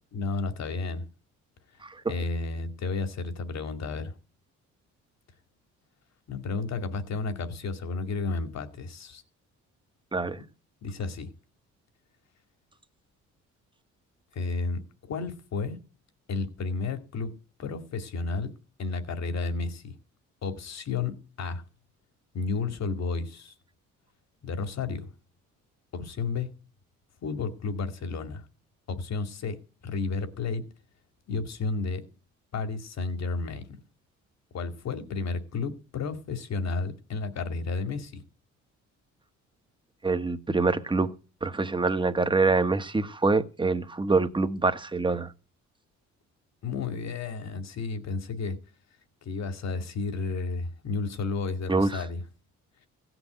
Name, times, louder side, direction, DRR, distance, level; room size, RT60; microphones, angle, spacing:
voice 1, 0.1-1.0 2.1-4.1 6.3-9.2 10.8-11.3 14.3-15.8 16.3-17.3 17.6-18.5 18.8-19.9 20.4-21.6 22.3-23.5 24.4-25.1 25.9-26.5 27.2-28.4 28.9-29.6 29.8-30.6 31.3-32.0 32.5-33.6 34.5-38.2 46.6-48.6 49.2-52.2, left 4 dB, 60° left, 2.4 m, -32 dB
voice 2, 1.8-2.1 10.1-10.4 40.0-41.1 41.4-45.3 51.7-52.0, right 3 dB, 15° right, 1.3 m, -25 dB
16.0 x 6.1 x 9.2 m
cardioid pair, 90°, 30 cm